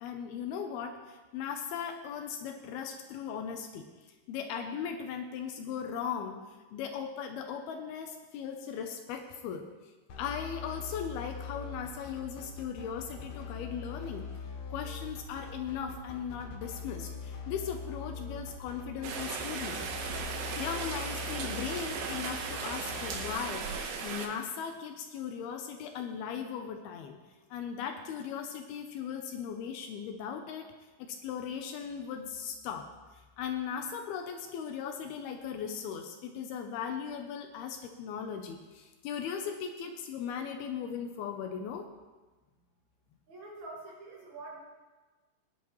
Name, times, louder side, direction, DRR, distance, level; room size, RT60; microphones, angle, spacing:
voice 1, 0.0-6.4 6.7-14.3 14.7-19.8 20.6-23.7 24.0-27.2 27.5-30.7 31.0-41.9, left 7 dB, 80° left, 5 dB, 2.5 m, -38 dB
sound 1, 10.1-23.3, left 6 dB, 60° left, 2.3 m, -42 dB
Rain, 19.0-24.3, right 5 dB, 75° right, 2.7 m, -37 dB
voice 2, 43.3-44.6, right 2 dB, 50° right, -4 dB, 2.8 m, -45 dB
18.5 x 10.0 x 3.1 m, 1.3 s
omnidirectional pair, 4.7 m